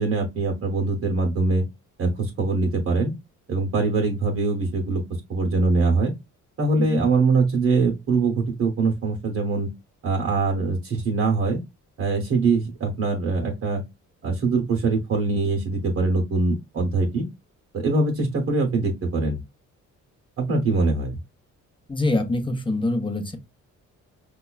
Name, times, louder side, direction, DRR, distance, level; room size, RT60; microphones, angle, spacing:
voice 1, 0.0-1.6 2.0-3.1 3.5-5.0 5.3-6.1 6.6-9.7 10.0-11.6 12.0-13.8 14.2-17.3 17.7-19.4 20.4-21.2, right 3 dB, 50° right, 0.8 m, -23 dB
voice 2, 6.8-7.1 21.9-23.4, left 2 dB, 15° left, 0.8 m, -25 dB
5.2 x 2.3 x 2.2 m
cardioid pair, 90°, 30 cm